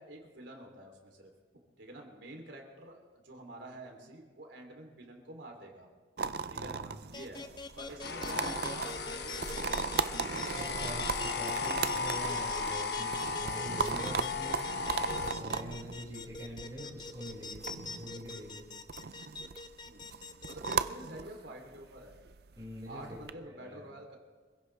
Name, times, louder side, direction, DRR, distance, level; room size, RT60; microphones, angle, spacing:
voice 1, 0.0-1.3 1.8-5.9 6.5-6.8 7.1-7.4 7.8-10.9 13.9-14.3 19.9-20.1 20.4-22.2 22.8-24.2, right 1 dB, 75° right, 1 dB, 3.3 m, -48 dB
sound 1, 6.2-23.3, right 5 dB, 55° right, 0.5 m, -38 dB
voice 2, 6.5-7.0 10.5-14.6 15.2-18.6 22.6-23.8, equal, 20° right, -5 dB, 6.2 m, -45 dB
sound 2, 7.1-20.8, left 3 dB, 25° left, 0.6 m, -43 dB
sound 3, 8.0-15.3, left 4 dB, 60° left, 1.0 m, -36 dB
26.5 x 16.0 x 3.4 m, 1.5 s
head